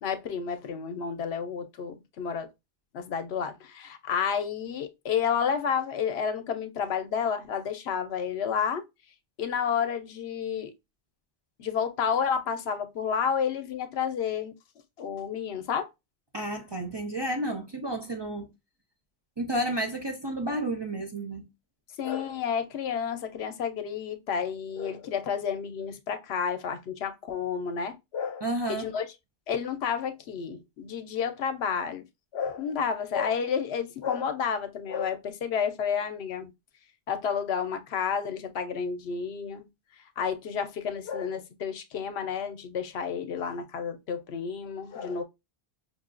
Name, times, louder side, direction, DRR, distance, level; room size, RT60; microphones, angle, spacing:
voice 1, 0.0-2.5 2.9-8.8 9.4-10.7 11.6-14.5 15.0-15.9 22.0-29.1 29.5-32.0 32.3-36.5 37.1-39.6 40.2-45.2, left 7 dB, 80° left, 0.9 m, -30 dB
voice 2, 16.3-18.5 19.4-21.5 28.4-28.9, right 1 dB, 35° right, 0.4 m, -31 dB
5.3 x 2.3 x 2.4 m
omnidirectional pair, 1.1 m